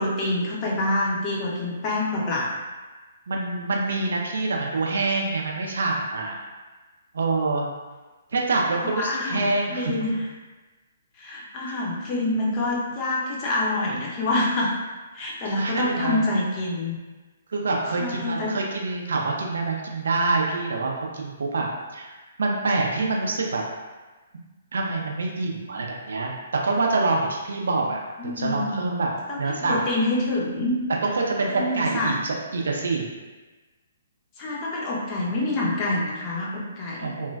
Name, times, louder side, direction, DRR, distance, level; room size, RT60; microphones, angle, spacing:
voice 1, 0.0-2.5 8.8-10.2 11.2-14.7 15.1-17.0 18.0-18.5 28.2-28.8 29.3-30.7 31.5-32.1 34.4-37.1, left 2 dB, 30° left, -4 dB, 0.6 m, -26 dB
voice 2, 3.3-6.3 7.1-7.7 8.3-9.9 11.7-11.8 15.5-16.2 17.5-22.1 22.4-23.6 24.7-29.1 29.4-29.8 30.9-33.1 37.0-37.4, right 3 dB, 65° right, -1 dB, 0.4 m, -26 dB
3.0 x 2.1 x 2.3 m, 1.2 s
figure-of-eight pair, 125°, 0 cm